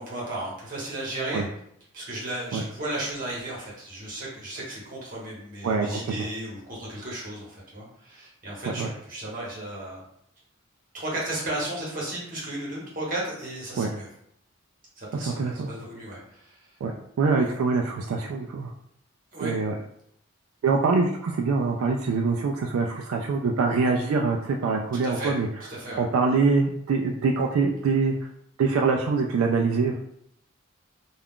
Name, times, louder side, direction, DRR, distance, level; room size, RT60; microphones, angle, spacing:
voice 1, 0.0-1.5 1.9-10.0 10.9-14.1 15.0-16.7 17.4-17.5 19.3-19.6 25.0-25.4 25.7-26.0, right 1 dB, 40° right, -5 dB, 1.0 m, -34 dB
voice 2, 5.6-6.3 8.8-8.9 13.8-13.9 15.1-15.7 16.8-18.7 19.4-19.7 20.6-25.5 26.0-28.1 28.6-29.9, right 4 dB, 85° right, 2 dB, 0.3 m, -24 dB
2.4 x 2.3 x 3.5 m, 0.73 s
head